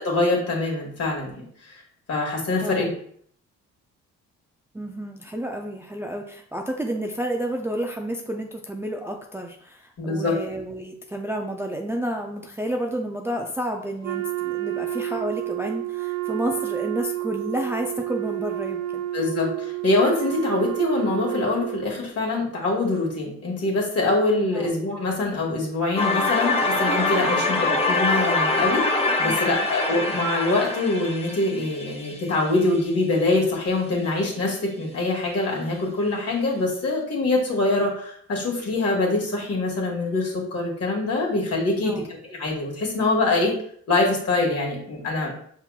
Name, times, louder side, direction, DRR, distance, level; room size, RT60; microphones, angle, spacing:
voice 1, 0.0-1.8 2.1-2.9 10.0-10.4 19.1-43.6 43.9-45.3, left 2 dB, 55° left, -2 dB, 1.8 m, -24 dB
voice 2, 2.6-2.9 4.7-19.0 24.5-24.7 29.2-29.7 41.8-42.0, right 1 dB, 10° right, 1 dB, 0.4 m, -30 dB
Wind instrument woodwind instrument, 14.0-22.0, right 16 dB, 75° right, 0.6 m, -30 dB
sound 1, 26.0-32.8, left 2 dB, 20° left, 0.7 m, -24 dB
5.7 x 3.6 x 2.4 m, 0.63 s
cardioid pair, 90°, 30 cm